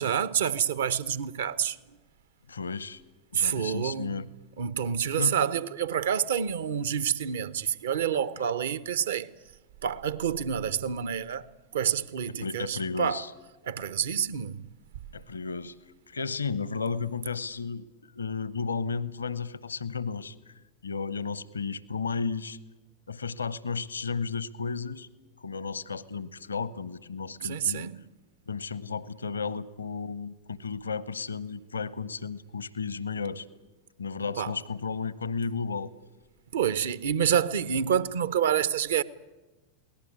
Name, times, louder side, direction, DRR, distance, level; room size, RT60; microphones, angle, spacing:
voice 1, 0.0-1.8 3.3-4.3 4.6-9.3 9.8-11.5 11.7-13.2 13.6-14.7 27.4-28.0 34.4-34.5 36.5-39.0, right 8 dB, 60° right, 0.9 m, -28 dB
voice 2, 2.5-3.0 3.3-4.2 5.2-5.4 12.4-13.3 15.1-15.8 16.1-17.9 18.1-20.5 20.8-22.6 23.1-25.1 25.4-27.8 28.5-33.5 34.0-35.9, left 5 dB, 75° left, 0.8 m, -33 dB
22.5 x 18.5 x 9.7 m
figure-of-eight pair, 90°, 0 cm